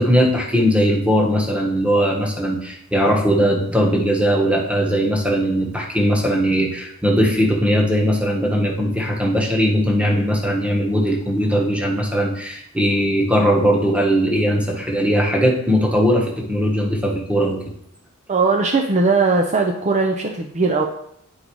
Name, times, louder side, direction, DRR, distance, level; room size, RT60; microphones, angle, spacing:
voice 1, 0.0-17.6, equal, 5° right, -1 dB, 1.2 m, -19 dB
voice 2, 18.3-20.8, right 3 dB, 35° right, 2 dB, 0.6 m, -19 dB
8.6 x 3.9 x 4.6 m, 0.71 s
head